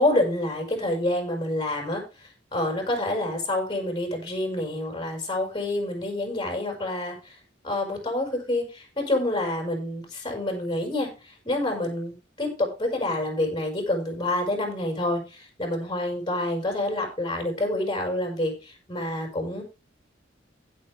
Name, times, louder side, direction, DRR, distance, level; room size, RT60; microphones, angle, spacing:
voice 1, 0.0-7.3 7.6-19.6, left 1 dB, 25° left, 2 dB, 6.2 m, -28 dB
16.0 x 7.6 x 3.5 m, 0.29 s
head